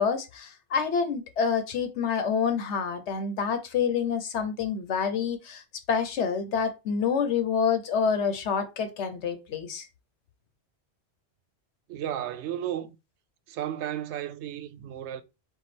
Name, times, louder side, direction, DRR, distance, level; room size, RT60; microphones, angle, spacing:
voice 1, 0.0-5.6 5.9-9.9, left 6 dB, 85° left, 1.1 m, -27 dB
voice 2, 11.9-13.0 13.5-15.2, right 11 dB, 85° right, 0.9 m, -33 dB
4.8 x 2.3 x 4.2 m
omnidirectional pair, 1.1 m